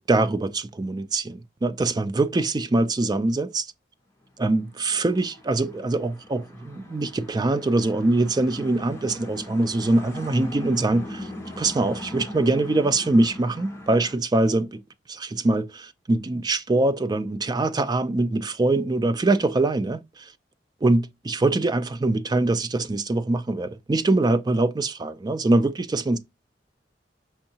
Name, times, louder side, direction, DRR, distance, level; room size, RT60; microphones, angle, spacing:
voice 1, 0.0-3.7 4.4-11.3 11.6-14.8 15.1-20.3 20.8-26.2, right 2 dB, 25° right, 0.4 m, -23 dB
sound 1, 4.5-14.2, left 1 dB, 15° left, 1.1 m, -39 dB
5.6 x 2.7 x 2.8 m
head